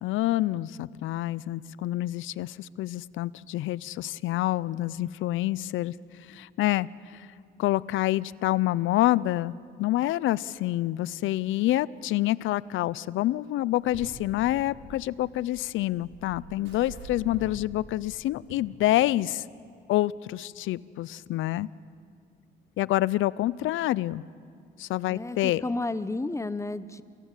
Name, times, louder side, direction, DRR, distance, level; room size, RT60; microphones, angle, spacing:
voice 1, 0.0-5.9 6.3-7.3 7.6-9.5 9.8-19.4 19.9-21.7 22.8-24.2 24.8-25.6, left 15 dB, 80° left, 20 dB, 0.5 m, -27 dB
sound 1, 13.6-18.5, right 2 dB, 70° right, 5.7 m, -46 dB
voice 2, 25.1-27.0, left 2 dB, 15° left, 14 dB, 0.8 m, -32 dB
28.0 x 15.5 x 8.2 m, 2.3 s
cardioid pair, 90°, 20 cm